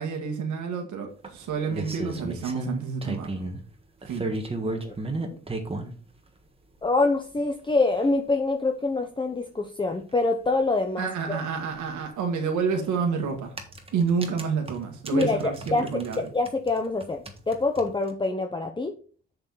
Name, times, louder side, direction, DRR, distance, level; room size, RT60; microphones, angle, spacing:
voice 1, 0.0-3.5 4.1-4.3 11.0-13.5 13.9-16.3, right 6 dB, 75° right, 3 dB, 1.8 m, -29 dB
sound 1, 1.2-3.6 4.0-5.9 6.8-6.9 7.4-7.5 7.7-7.8 8.0-8.1 10.1-10.2 10.4-10.5 12.5-12.7 13.4-16.2 16.5-18.1, right 2 dB, 20° right, 1.5 m, -34 dB
voice 2, 6.8-11.4 15.1-15.9 16.2-18.9, left 3 dB, 15° left, 4 dB, 0.8 m, -25 dB
7.0 x 6.6 x 4.0 m, 0.40 s
cardioid pair, 90°, 30 cm